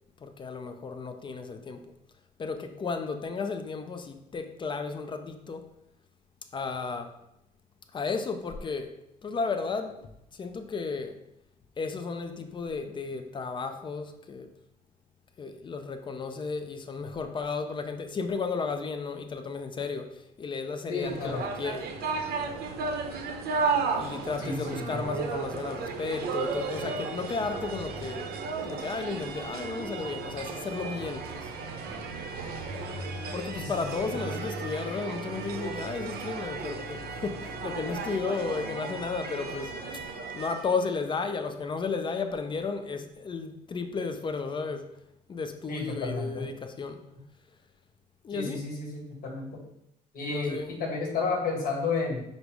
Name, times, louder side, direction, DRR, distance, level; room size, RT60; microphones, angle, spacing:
voice 1, 0.2-1.9 2.4-5.7 6.5-7.2 7.9-11.2 11.8-14.5 15.4-21.9 23.9-28.4 28.6-31.5 33.3-39.8 40.3-44.9 45.3-47.0 48.2-48.6 50.3-50.8, left 4 dB, 30° left, 0.4 m, -34 dB
voice 2, 20.9-21.4 24.4-25.1 33.6-34.1 45.7-46.5 48.3-49.6 50.1-52.2, left 3 dB, 60° left, 1.4 m, -32 dB
sound 1, 21.0-40.9, right 4 dB, 65° right, 0.7 m, -34 dB
5.1 x 2.0 x 4.6 m
cardioid pair, 110°, 17 cm